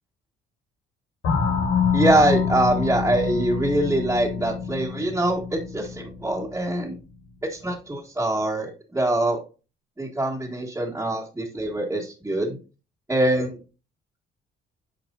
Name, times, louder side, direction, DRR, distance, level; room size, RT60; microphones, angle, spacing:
sound 1, 1.2-7.6, left 6 dB, 90° left, 1.8 m, -27 dB
voice 1, 1.9-6.9 7.5-9.4 10.0-12.6 13.1-13.6, right 1 dB, 15° right, -4 dB, 1.8 m, -24 dB
9.3 x 5.3 x 2.5 m, 0.32 s
cardioid pair, 90°, 20 cm